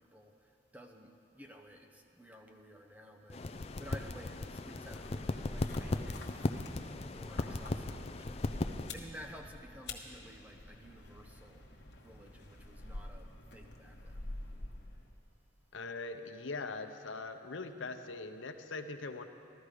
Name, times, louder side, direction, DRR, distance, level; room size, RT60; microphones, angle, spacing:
voice 1, 0.0-6.2 6.8-11.6 12.0-14.3, equal, 10° right, 3 dB, 0.7 m, -53 dB
sound 1, 3.3-8.9, left 2 dB, 30° left, 0.4 m, -37 dB
sound 2, 4.8-15.2, left 2 dB, 60° left, 1.2 m, -47 dB
voice 2, 15.7-19.3, left 3 dB, 85° left, 7 dB, 0.8 m, -41 dB
15.5 x 12.5 x 4.9 m, 2.5 s
head